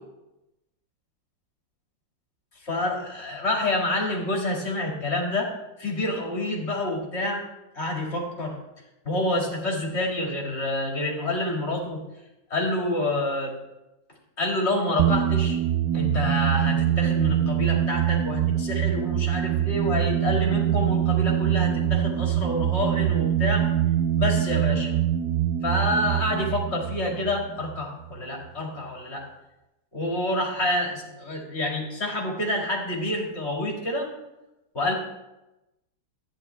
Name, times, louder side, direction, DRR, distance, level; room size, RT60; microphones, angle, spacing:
voice 1, 2.6-5.5 5.8-7.4 7.7-8.6 9.0-12.0 12.5-13.5 14.4-15.6 15.9-23.7 24.2-25.0 25.6-29.3 29.9-34.1 34.7-34.9, left 1 dB, 35° left, -1 dB, 2.2 m, -28 dB
sound 1, 15.0-28.2, right 11 dB, 70° right, 0.9 m, -24 dB
11.5 x 9.6 x 3.3 m, 0.96 s
omnidirectional pair, 2.1 m